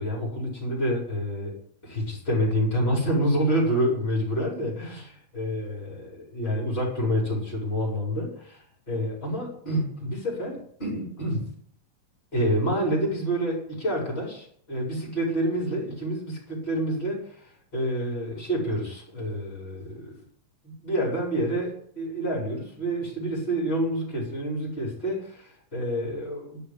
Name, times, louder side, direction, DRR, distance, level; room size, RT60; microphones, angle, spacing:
voice 1, 0.0-1.5 1.8-11.5 12.3-20.1 20.6-26.6, equal, 15° left, -3 dB, 5.0 m, -28 dB
12.0 x 7.2 x 9.7 m, 0.62 s
omnidirectional pair, 3.9 m